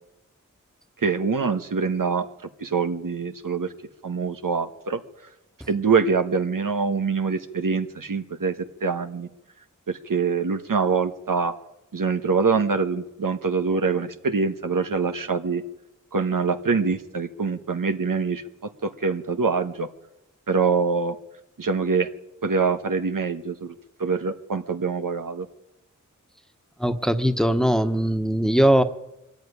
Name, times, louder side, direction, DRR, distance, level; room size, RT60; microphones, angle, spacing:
voice 1, 1.0-2.3 2.6-3.7 4.0-5.0 5.7-9.3 9.9-11.5 11.9-15.6 16.1-18.4 18.8-19.9 20.5-21.2 21.6-22.1 22.4-25.5, right 5 dB, 85° right, 8 dB, 1.3 m, -24 dB
voice 2, 26.8-28.8, right 1 dB, ahead, 8 dB, 1.4 m, -20 dB
23.0 x 14.0 x 9.8 m, 0.89 s
wide cardioid pair, 50°, 32 cm